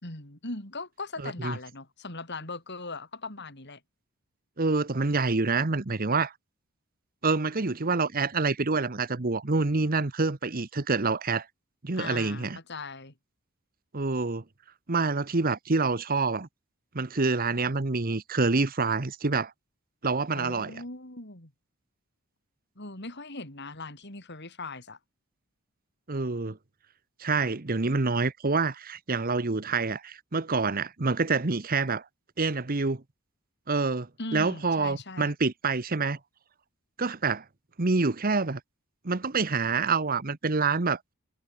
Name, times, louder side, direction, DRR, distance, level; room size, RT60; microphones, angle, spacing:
voice 1, 0.0-3.8 11.9-13.1 20.3-21.5 22.7-25.0 34.2-35.3, left 3 dB, 50° left, 4.9 m, -39 dB
voice 2, 1.2-1.6 4.6-6.3 7.2-11.5 11.8-12.6 13.9-14.4 14.9-16.5 16.9-19.5 20.0-20.7 26.1-26.6 27.2-32.0 32.4-33.0 33.7-36.2 37.0-37.4 37.8-38.6 39.0-41.0, right 3 dB, 40° right, 1.0 m, -27 dB
head